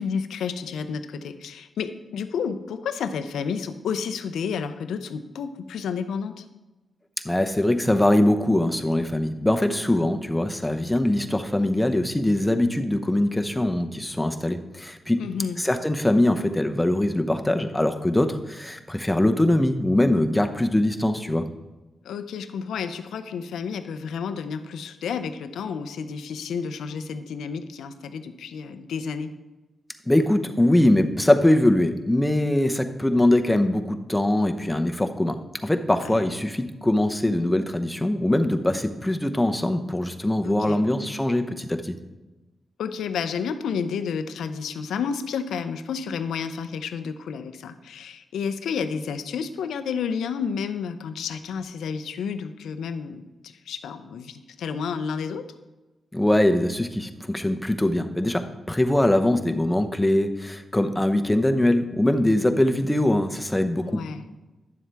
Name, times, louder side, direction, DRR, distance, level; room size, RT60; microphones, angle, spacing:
voice 1, 0.0-6.4 15.2-15.6 22.0-29.3 36.0-36.2 40.4-40.8 42.8-55.5 63.8-64.2, left 6 dB, 90° left, 11 dB, 0.5 m, -31 dB
voice 2, 7.2-15.2 15.6-21.4 30.1-41.9 56.1-63.9, left 1 dB, 10° left, 7 dB, 0.8 m, -22 dB
10.5 x 7.3 x 3.4 m, 1.1 s
cardioid pair, 60°, 0 cm